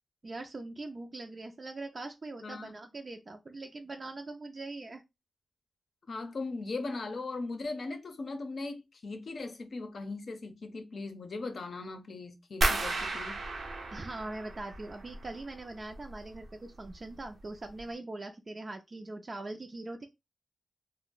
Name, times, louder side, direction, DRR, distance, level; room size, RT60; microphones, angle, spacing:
voice 1, 0.2-5.0 13.9-20.1, right 2 dB, 40° right, 0.4 m, -42 dB
voice 2, 2.4-2.7 6.1-13.4, left 3 dB, 65° left, 0.6 m, -39 dB
sound 1, 12.6-15.5 15.8-16.5 16.8-17.2 17.7-17.8, right 2 dB, 90° right, 0.7 m, -33 dB
2.6 x 2.1 x 3.7 m
wide cardioid pair, 90°, 0 cm